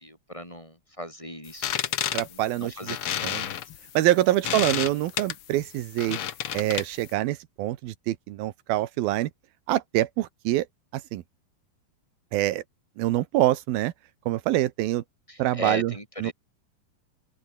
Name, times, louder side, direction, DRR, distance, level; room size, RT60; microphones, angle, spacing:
voice 1, 0.0-1.9 2.3-3.4 4.5-4.6 15.3-16.3, equal, 10° left, 7.0 m, -38 dB
sound 1, 1.5-7.1, left 10 dB, 65° left, 1.4 m, -31 dB
voice 2, 2.1-3.0 3.2-3.5 3.9-6.2 6.5-9.3 9.7-10.7 10.9-11.2 12.3-12.6 13.0-13.9 14.3-15.0 15.4-15.9 16.2-16.3, right 15 dB, 85° right, 2.9 m, -25 dB
omnidirectional pair, 4.2 m